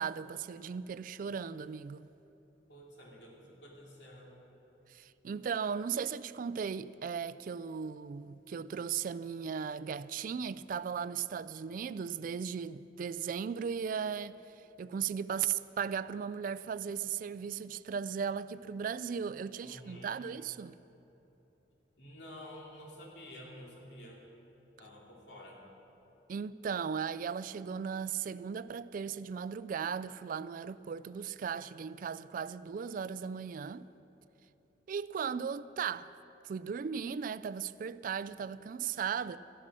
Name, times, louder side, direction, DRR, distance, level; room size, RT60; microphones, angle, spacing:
voice 1, 0.0-2.1 4.9-20.8 26.3-33.9 34.9-36.1 36.4-39.4, right 7 dB, 50° right, 0.3 m, -37 dB
voice 2, 2.7-4.4 19.6-20.2 22.0-24.2 24.8-25.6, left 1 dB, 75° left, 2.7 m, -50 dB
14.0 x 11.5 x 6.2 m
head